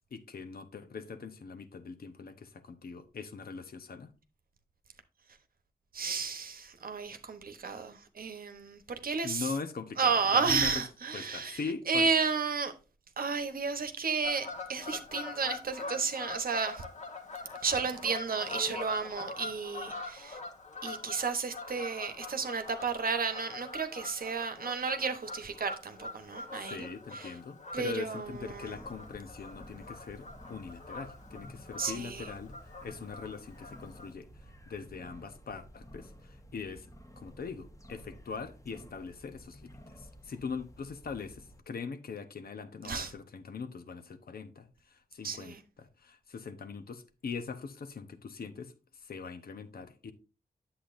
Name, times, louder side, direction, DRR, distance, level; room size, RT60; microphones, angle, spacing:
voice 1, 0.1-4.1 9.2-10.7 11.1-12.1 26.5-32.5 32.8-34.3 34.7-36.9 37.2-48.7 49.0-50.1, left 5 dB, 75° left, 1.0 m, -41 dB
voice 2, 5.9-9.5 10.0-12.7 13.2-16.8 17.6-20.4 20.8-27.3 27.7-28.8 31.8-32.3 42.8-43.1 45.2-45.6, right 5 dB, 70° right, 1.0 m, -32 dB
Fowl / Bird vocalization bird call bird song, 14.2-34.1, left 3 dB, 50° left, 1.4 m, -44 dB
sound 1, 28.2-41.6, equal, 20° left, 1.3 m, -53 dB
8.5 x 7.7 x 2.6 m
cardioid pair, 60°, 16 cm